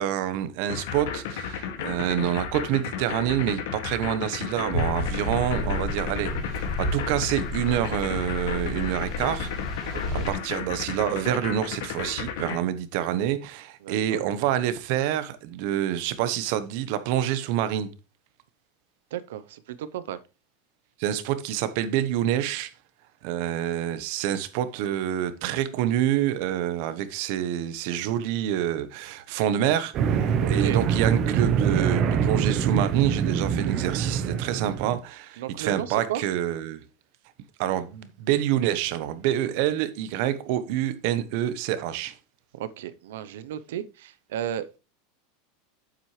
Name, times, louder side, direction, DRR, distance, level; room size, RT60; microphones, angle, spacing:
voice 1, 0.0-9.5 9.8-17.9 21.0-22.7 23.2-36.8 37.6-42.2, right 11 dB, 55° right, 1.0 m, -27 dB
sound 1, 0.7-12.6, left 8 dB, 75° left, 2.2 m, -33 dB
sound 2, 4.7-10.3, left 2 dB, 35° left, 3.0 m, -31 dB
voice 2, 9.9-10.3 13.8-14.2 19.1-20.2 30.4-30.8 34.7-34.8 35.4-36.2 42.5-44.8, right 11 dB, 80° right, 0.8 m, -34 dB
sound 3, 29.9-35.0, right 7 dB, 35° right, 1.0 m, -24 dB
8.9 x 7.6 x 3.3 m
supercardioid pair, 150°, 0 cm